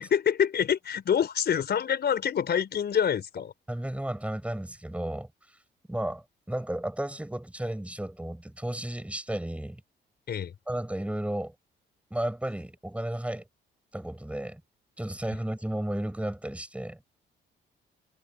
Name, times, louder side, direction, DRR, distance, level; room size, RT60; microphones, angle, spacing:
voice 1, 0.0-3.5 10.3-10.5, left 8 dB, 55° left, 4.7 m, -26 dB
voice 2, 3.7-5.3 5.9-9.8 10.7-11.5 12.1-13.4 13.9-14.6 15.0-17.0, right 1 dB, 5° right, 5.0 m, -33 dB
cardioid pair, 90°, 20 cm